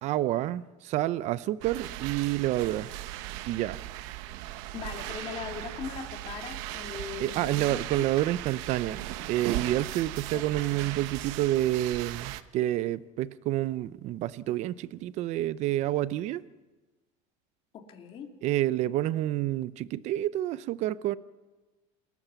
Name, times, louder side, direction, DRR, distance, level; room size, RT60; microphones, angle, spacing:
voice 1, 0.0-2.9 3.5-3.8 7.2-16.4 18.4-21.2, right 14 dB, 45° right, 0.6 m, -29 dB
sound 1, 1.6-12.4, right 15 dB, 75° right, 1.0 m, -38 dB
voice 2, 4.7-8.0 10.3-10.5 10.8-11.0 17.7-18.3, left 6 dB, 35° left, 2.6 m, -40 dB
28.0 x 13.5 x 6.9 m
cardioid pair, 145°, 16 cm